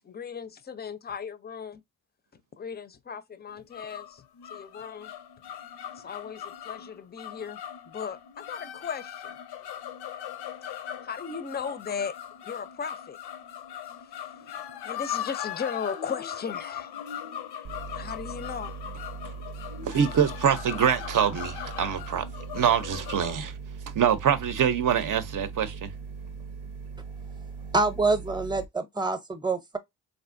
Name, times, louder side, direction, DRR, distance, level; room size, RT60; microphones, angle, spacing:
voice 1, 0.0-1.8 2.3-4.2 4.5-5.1 5.9-9.4 11.0-12.1 12.4-13.2 14.0-17.0 17.9-18.7, left 6 dB, 25° left, 0.5 m, -37 dB
sound 1, 3.5-23.4, left 10 dB, 75° left, 0.5 m, -39 dB
sound 2, 17.6-28.7, right 5 dB, 85° right, 0.8 m, -40 dB
voice 2, 19.8-22.3 22.5-23.5 23.9-25.9, right 8 dB, 50° right, 0.6 m, -24 dB
voice 3, 27.7-29.8, right 3 dB, 10° right, 0.7 m, -26 dB
3.2 x 2.5 x 2.5 m
cardioid pair, 70°, 39 cm